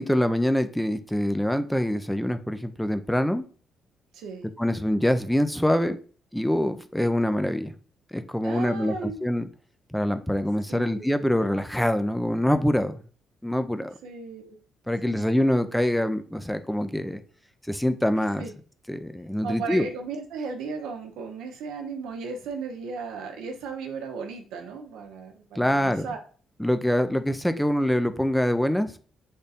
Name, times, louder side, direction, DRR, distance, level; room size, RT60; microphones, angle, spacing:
voice 1, 0.0-3.4 4.6-6.0 6.3-7.7 8.1-9.4 9.9-13.0 13.4-13.9 14.9-17.2 17.7-18.4 18.9-19.9 25.6-26.1 26.6-29.1, left 1 dB, 5° left, 9 dB, 0.4 m, -25 dB
voice 2, 4.1-4.5 8.4-9.2 10.7-11.2 14.0-14.6 15.0-15.2 18.4-18.5 19.4-26.2, right 5 dB, 90° right, 4 dB, 0.8 m, -36 dB
3.5 x 2.6 x 4.1 m, 0.40 s
cardioid pair, 90°, 0 cm